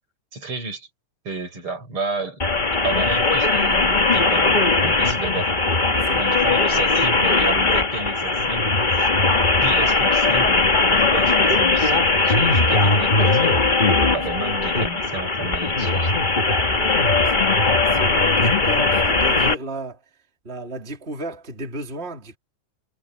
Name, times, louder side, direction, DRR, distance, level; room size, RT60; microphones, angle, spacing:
voice 1, 0.3-0.9 1.2-2.4 2.8-5.5 6.2-9.1 9.6-10.7 10.9-13.6 14.1-16.2, right 3 dB, 45° right, 8.1 m, -32 dB
sound 1, 2.4-19.5, left 3 dB, 25° left, 1.1 m, -19 dB
voice 2, 5.9-6.2 16.7-17.6 17.9-20.0 20.4-22.4, right 1 dB, 20° right, 3.6 m, -33 dB
omnidirectional pair, 3.4 m